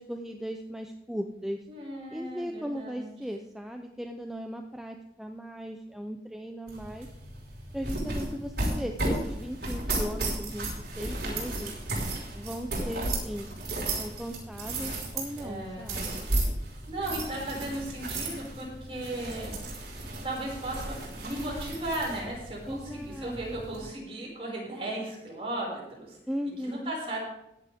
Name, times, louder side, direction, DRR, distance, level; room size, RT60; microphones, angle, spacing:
voice 1, 0.0-1.7 2.1-7.1 7.7-11.7 12.3-13.5 13.9-16.3 22.7-23.7 26.3-26.9, equal, 5° right, 4 dB, 0.6 m, -37 dB
voice 2, 1.7-3.1 15.4-15.9 16.9-19.5 20.2-21.0 21.2-26.2 26.6-27.2, right 1 dB, 35° right, -4 dB, 5.8 m, -36 dB
sound 1, 6.7-23.8, right 2 dB, 60° right, 5.2 m, -34 dB
16.0 x 10.5 x 3.6 m, 0.85 s
head